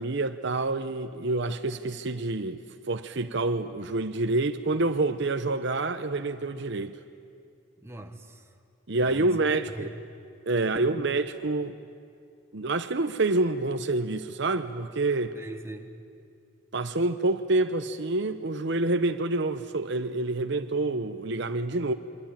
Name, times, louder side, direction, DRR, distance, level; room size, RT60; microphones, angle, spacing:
voice 1, 0.0-6.9 8.9-9.9 10.5-11.7 12.5-15.3 16.7-21.9, right 2 dB, 60° right, 0.9 m, -27 dB
voice 2, 7.8-8.5 9.0-9.4 9.7-9.9 10.6-10.9 15.4-15.9, right 2 dB, 15° right, 1.5 m, -41 dB
27.5 x 24.0 x 8.9 m
head